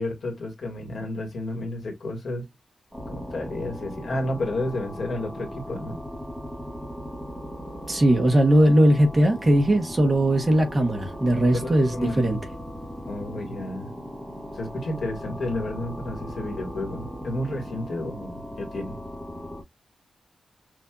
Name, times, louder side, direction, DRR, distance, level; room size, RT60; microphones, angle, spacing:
voice 1, 0.0-2.5 3.1-6.0 11.5-12.4 13.1-13.9 14.5-19.0, left 1 dB, 55° left, 1.8 m, -31 dB
sound 1, 2.9-19.6, equal, ahead, 1.2 m, -38 dB
voice 2, 7.9-12.4, right 1 dB, 25° right, 1.2 m, -19 dB
6.3 x 2.7 x 2.3 m
wide cardioid pair, 180°, 0 cm